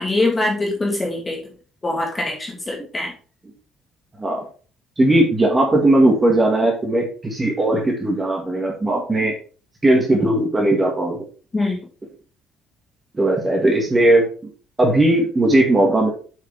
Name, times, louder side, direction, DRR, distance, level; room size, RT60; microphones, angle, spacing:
voice 1, 0.0-1.4 1.8-3.1 11.5-11.8, left 2 dB, 15° left, -1 dB, 1.9 m, -23 dB
voice 2, 5.0-9.3 9.8-11.3 13.1-14.3 14.8-16.1, right 1 dB, 15° right, 0 dB, 1.9 m, -18 dB
7.4 x 6.6 x 3.6 m, 0.39 s
cardioid pair, 170°, 0 cm